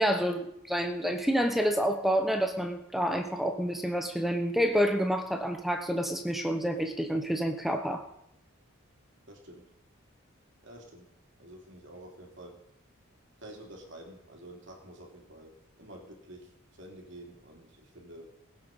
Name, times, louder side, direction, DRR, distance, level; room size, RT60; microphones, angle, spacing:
voice 1, 0.0-8.0, equal, ahead, 5 dB, 1.0 m, -28 dB
voice 2, 9.3-9.7 10.6-11.1 11.4-12.6 13.4-16.5 16.8-18.3, right 1 dB, 60° right, 1 dB, 3.1 m, -49 dB
20.5 x 8.0 x 5.5 m, 0.81 s
head